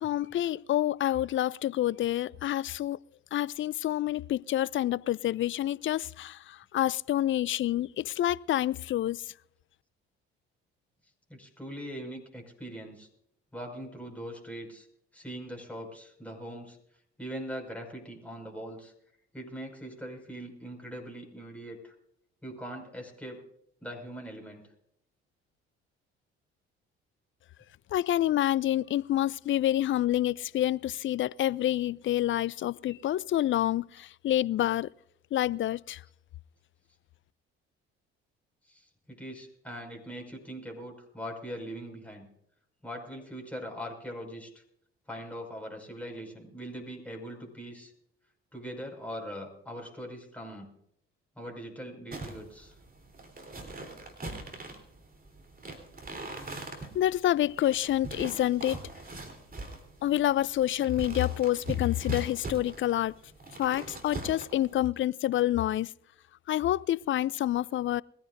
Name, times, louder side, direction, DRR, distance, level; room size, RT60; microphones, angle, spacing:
voice 1, 0.0-3.0 3.3-9.3 27.9-34.9 35.3-36.0 56.9-58.8 60.0-63.1 63.6-65.9 66.5-68.0, left 13 dB, 40° left, 0.4 m, -28 dB
voice 2, 11.3-13.1 13.5-14.9 15.1-16.8 17.2-18.9 19.3-21.9 22.4-23.4 23.8-24.7 38.6-42.3 42.8-44.6 45.1-47.9 48.5-50.7 51.4-52.7, equal, 5° left, 5.7 m, -41 dB
sound 1, 52.1-64.9, right 2 dB, 25° right, 3.6 m, -42 dB
22.0 x 15.0 x 2.6 m
hypercardioid pair, 50°, 33 cm